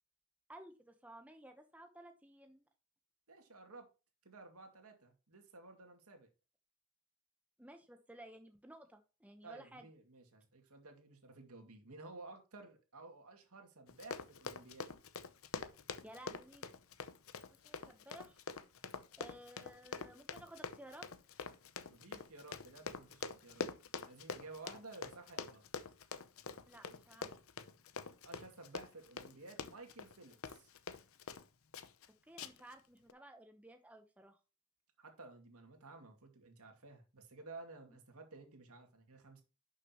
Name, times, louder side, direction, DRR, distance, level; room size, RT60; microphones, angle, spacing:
voice 1, 0.5-2.7 7.6-9.9 16.0-16.7 17.5-18.4 19.2-21.1 26.7-27.4 32.2-34.4 37.9-38.0, right 1 dB, 5° right, 5 dB, 0.9 m, -55 dB
voice 2, 3.3-3.9 4.2-6.3 9.4-14.9 21.9-23.7 24.1-25.6 28.2-30.7 35.0-39.4, right 3 dB, 80° right, 4 dB, 2.3 m, -54 dB
Run, 13.9-31.5 31.7-32.1 32.4-32.7 33.1-33.2, left 5 dB, 65° left, 0.7 m, -45 dB
11.0 x 6.4 x 3.0 m, 0.31 s
head